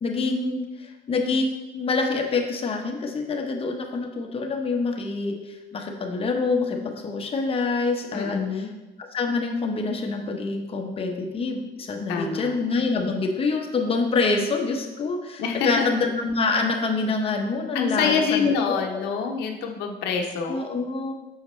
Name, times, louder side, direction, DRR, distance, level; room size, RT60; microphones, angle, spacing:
voice 1, 0.0-8.6 9.0-19.0 20.4-21.1, left 3 dB, 35° left, 3 dB, 0.9 m, -26 dB
voice 2, 8.1-8.7 12.1-12.5 15.4-15.9 17.7-20.6, left 5 dB, 90° left, 2 dB, 0.8 m, -26 dB
6.4 x 4.9 x 3.1 m, 1.1 s
cardioid pair, 110°, 17 cm